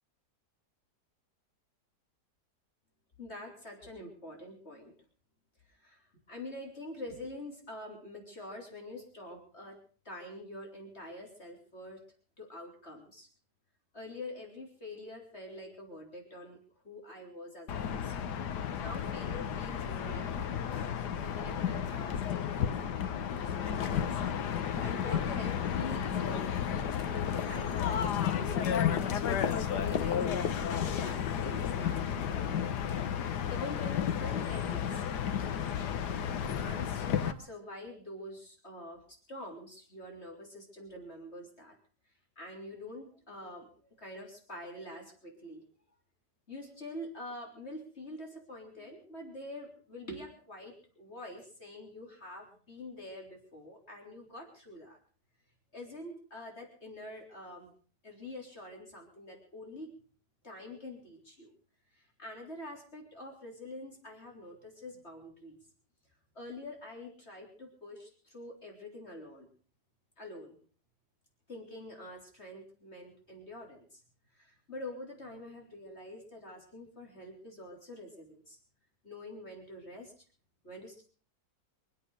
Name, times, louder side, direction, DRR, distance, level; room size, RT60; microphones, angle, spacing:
voice 1, 3.2-4.9 5.7-9.8 10.0-12.0 12.4-13.3 13.9-16.6 16.8-18.3 18.8-20.9 21.2-24.2 24.5-26.5 27.1-32.7 33.5-35.0 36.5-41.8 42.4-43.7 44.0-45.6 46.5-55.0 55.7-57.7 58.0-59.9 60.4-61.5 61.9-65.6 66.3-69.5 70.2-70.6 71.5-74.0 74.3-78.6 79.0-80.1 80.6-81.0, left 1 dB, 40° left, 0 dB, 4.1 m, -46 dB
sound 1, 17.7-37.3, left 8 dB, 85° left, 1.6 m, -32 dB
24.5 x 8.3 x 6.5 m, 0.42 s
omnidirectional pair, 1.7 m